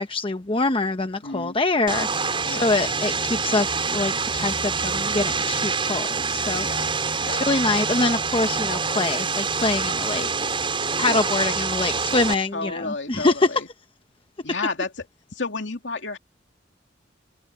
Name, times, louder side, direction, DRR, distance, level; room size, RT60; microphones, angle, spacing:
voice 1, 0.0-6.9 7.3-10.3 11.0-13.5, left 2 dB, 30° left, 0.9 m, -25 dB
voice 2, 1.2-1.6 2.4-2.7 6.6-6.9 7.2-7.4 11.1-11.3 12.5-13.7 14.4-15.1 15.3-16.2, left 3 dB, 70° left, 2.7 m, -31 dB
Vehicle, 1.9-12.3, right 4 dB, 30° right, 4.8 m, -26 dB
head